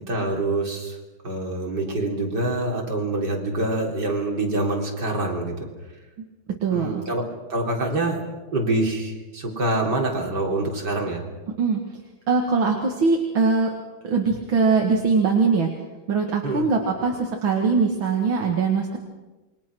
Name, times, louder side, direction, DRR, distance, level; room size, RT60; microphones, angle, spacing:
voice 1, 0.1-1.0 1.2-5.7 6.7-8.2 8.5-11.2 16.4-16.7, right 2 dB, 55° right, 0 dB, 4.4 m, -25 dB
voice 2, 6.6-7.0 11.6-11.8 12.3-13.7 14.0-15.7 16.1-19.0, right 4 dB, 75° right, 1 dB, 2.7 m, -21 dB
28.0 x 23.5 x 6.2 m, 1.2 s
omnidirectional pair, 2.2 m